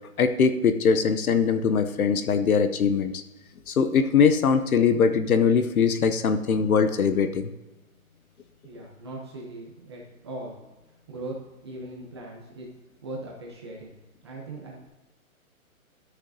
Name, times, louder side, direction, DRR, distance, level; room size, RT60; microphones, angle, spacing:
voice 1, 0.2-3.2 3.7-7.5, left 6 dB, 80° left, 9 dB, 0.9 m, -22 dB
voice 2, 8.6-10.6 11.1-11.3 11.6-12.7 13.0-13.9 14.2-14.9, right 2 dB, 20° right, -2 dB, 0.8 m, -39 dB
13.0 x 6.4 x 2.7 m, 1.1 s
hypercardioid pair, 165°, 43 cm